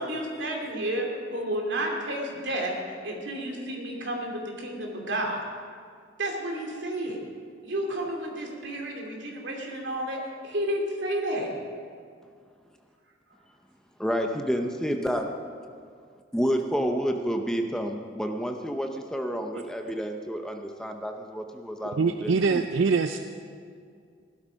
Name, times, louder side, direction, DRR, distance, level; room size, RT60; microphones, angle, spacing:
voice 1, 0.0-2.7 3.0-5.4 6.2-7.2 7.6-10.2 10.4-11.6, right 1 dB, 70° right, 0 dB, 2.7 m, -31 dB
voice 2, 14.0-15.3 16.3-22.7, equal, 5° left, 4 dB, 0.7 m, -29 dB
voice 3, 22.0-23.2, right 4 dB, 85° right, 8 dB, 0.5 m, -23 dB
16.5 x 12.0 x 5.1 m, 2.2 s
head